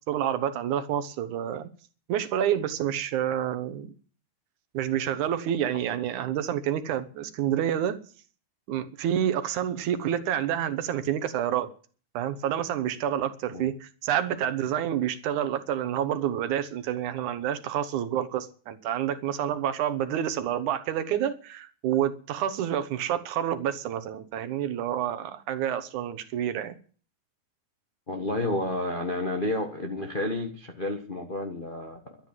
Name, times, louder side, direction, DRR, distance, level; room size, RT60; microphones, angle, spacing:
voice 1, 0.1-1.7 2.1-3.9 4.7-8.0 8.7-11.7 12.1-26.7, right 10 dB, 70° right, 2.5 m, -28 dB
voice 2, 28.1-32.2, left 1 dB, 80° left, 0.4 m, -30 dB
12.5 x 9.7 x 7.5 m
omnidirectional pair, 3.7 m